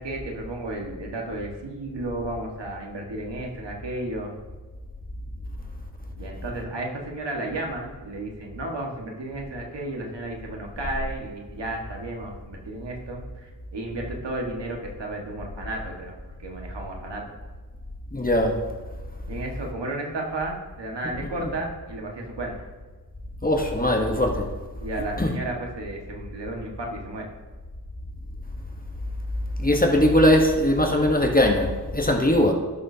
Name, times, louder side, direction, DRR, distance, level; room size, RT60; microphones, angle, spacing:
voice 1, 0.0-4.3 6.2-16.1 16.4-17.2 19.3-22.6 24.8-27.3, right 2 dB, 85° right, 0 dB, 1.7 m, -33 dB
voice 2, 18.1-18.6 23.4-24.5 25.2-25.3 29.6-32.5, left 1 dB, 20° left, 2 dB, 1.1 m, -20 dB
16.0 x 6.3 x 2.8 m, 1.3 s
wide cardioid pair, 70°, 41 cm